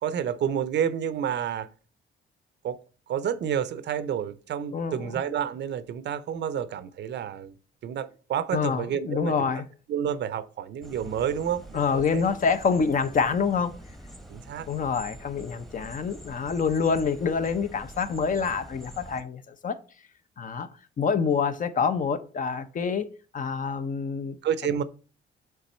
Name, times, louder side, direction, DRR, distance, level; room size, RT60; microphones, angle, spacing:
voice 1, 0.0-1.7 2.6-2.8 3.1-7.5 7.8-9.5 9.9-12.2 14.3-14.7 24.4-24.8, right 9 dB, 60° right, 0.6 m, -29 dB
voice 2, 4.7-5.1 8.5-9.6 11.7-13.7 14.7-19.8 20.4-20.7 21.0-23.1 23.3-24.4, left 5 dB, 40° left, 0.6 m, -26 dB
sound 1, 10.8-19.2, equal, ahead, 0.9 m, -45 dB
6.9 x 3.5 x 4.3 m
cardioid pair, 90°, 20 cm